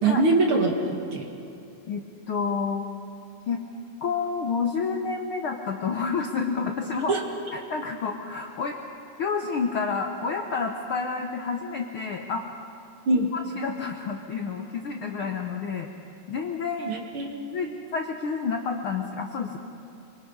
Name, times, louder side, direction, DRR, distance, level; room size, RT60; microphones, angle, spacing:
voice 1, 0.0-1.3 7.1-7.2 13.1-13.3 16.9-17.7, right 2 dB, 50° right, 2 dB, 2.1 m, -24 dB
voice 2, 1.9-2.9 3.5-3.6 4.0-7.1 7.5-8.8 9.2-12.4 13.1-15.9 16.3-16.9 17.5-19.6, left 5 dB, 65° left, 3 dB, 1.3 m, -29 dB
25.0 x 24.0 x 5.5 m, 2.7 s
omnidirectional pair, 3.7 m